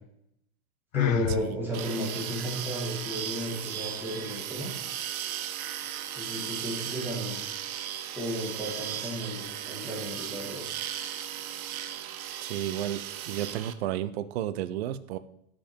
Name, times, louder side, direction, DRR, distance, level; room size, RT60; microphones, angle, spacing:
Sigh, 0.9-1.4, left 14 dB, 65° left, 0.7 m, -26 dB
voice 1, 0.9-4.7 6.0-7.4 8.1-10.6, equal, 5° right, -4 dB, 2.2 m, -34 dB
Belt grinder - Arboga - Grinding steel smooth, 1.7-13.7, right 10 dB, 75° right, 0.9 m, -36 dB
voice 2, 12.4-15.2, right 12 dB, 50° right, 13 dB, 0.6 m, -32 dB
12.5 x 5.2 x 4.4 m, 0.75 s
supercardioid pair, 170°, 43 cm